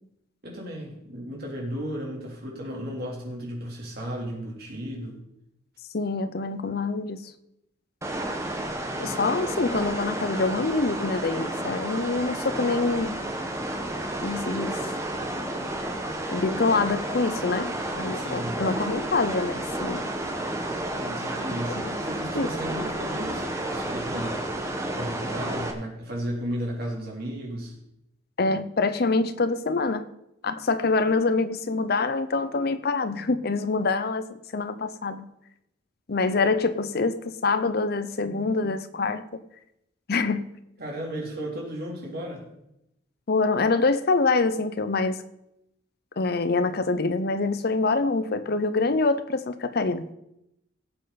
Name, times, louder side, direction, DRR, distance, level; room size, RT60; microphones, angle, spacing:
voice 1, 0.4-5.2 18.1-18.6 20.7-24.5 24.9-27.7 40.8-42.4, equal, 50° right, -2 dB, 3.3 m, -34 dB
voice 2, 5.9-7.3 9.0-13.2 14.2-14.8 16.3-20.0 22.4-22.5 28.4-30.1 30.4-35.3 36.1-39.4 40.1-40.5 43.3-45.2 46.2-50.1, left 3 dB, 50° left, 12 dB, 0.7 m, -25 dB
sound 1, 8.0-25.7, right 1 dB, 15° right, 1.2 m, -31 dB
17.5 x 7.8 x 4.1 m, 0.84 s
head